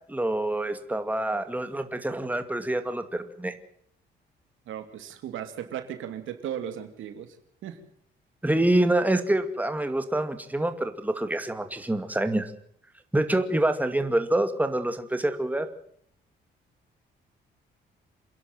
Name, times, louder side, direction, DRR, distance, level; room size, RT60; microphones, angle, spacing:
voice 1, 0.1-3.5 8.4-12.5 13.1-15.7, right 1 dB, 10° right, 8 dB, 2.3 m, -26 dB
voice 2, 4.7-7.4 7.6-7.8, right 9 dB, 80° right, 8 dB, 2.8 m, -36 dB
28.0 x 11.0 x 9.2 m, 0.67 s
cardioid pair, 90°, 20 cm